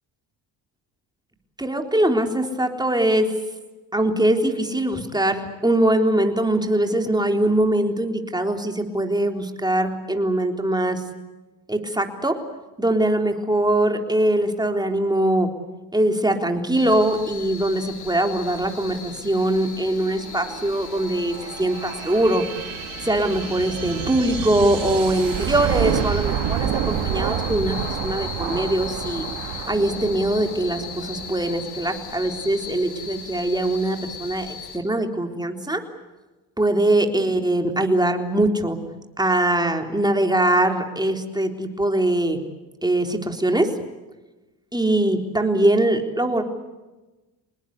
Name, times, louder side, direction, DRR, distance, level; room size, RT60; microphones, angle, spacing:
voice 1, 1.6-3.3 3.9-11.0 11.7-12.3 12.8-15.5 15.9-22.4 23.0-29.3 29.7-35.8 36.6-38.8 39.2-42.4 42.8-43.7 44.7-46.4, right 1 dB, 10° right, 4 dB, 3.9 m, -22 dB
sound 1, 16.7-34.8, left 7 dB, 55° left, 3.9 m, -37 dB
sound 2, 19.3-32.8, right 10 dB, 70° right, 2.1 m, -29 dB
26.0 x 20.5 x 8.4 m, 1.1 s
supercardioid pair, 80°, 46 cm